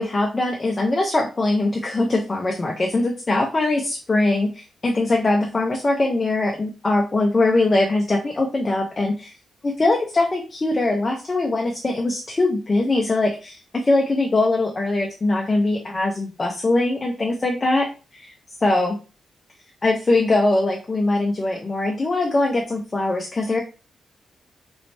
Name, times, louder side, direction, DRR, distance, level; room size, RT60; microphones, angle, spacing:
voice 1, 0.0-9.3 9.6-18.3 18.6-19.0 19.8-23.6, left 2 dB, 25° left, 0 dB, 0.5 m, -22 dB
3.0 x 2.8 x 3.2 m, 0.33 s
wide cardioid pair, 175°, 0 cm